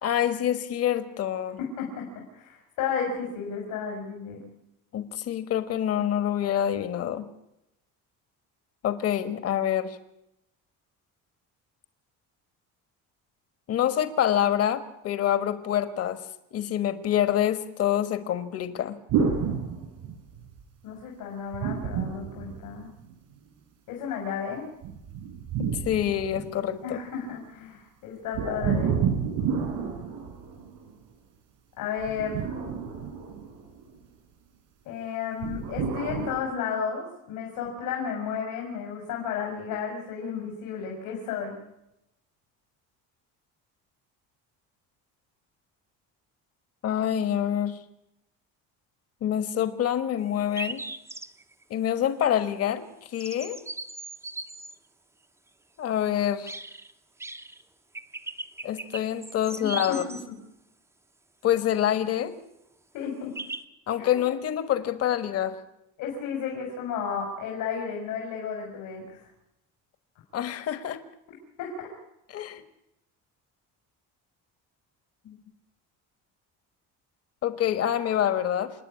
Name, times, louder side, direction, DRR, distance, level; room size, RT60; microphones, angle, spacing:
voice 1, 0.0-1.6 4.9-7.3 8.8-10.0 13.7-16.2 16.5-19.0 25.8-27.0 46.8-47.8 49.2-50.8 51.7-53.6 55.8-56.5 58.6-60.0 61.4-62.3 63.9-65.6 70.3-71.0 72.3-72.6 75.2-75.4 77.4-78.7, left 10 dB, 45° left, 11 dB, 1.5 m, -26 dB
voice 2, 1.6-4.4 20.8-22.9 23.9-24.7 26.8-29.0 31.8-32.6 34.8-41.6 59.6-59.7 62.9-63.3 64.0-64.2 66.0-69.2 71.6-71.9, left 6 dB, 80° left, 0 dB, 4.7 m, -33 dB
sound 1, 19.1-20.5 21.5-23.1 24.8-26.8 28.3-30.9 32.0-33.9 35.4-36.4, right 6 dB, 85° right, 4.5 m, -30 dB
sound 2, 50.2-50.3 50.6-51.6 53.2-54.8 56.5-56.9 57.2-57.6 57.9-60.2 63.4-63.6, right 2 dB, 10° right, 0.7 m, -38 dB
28.0 x 9.6 x 9.8 m, 0.85 s
cardioid pair, 170°, 33 cm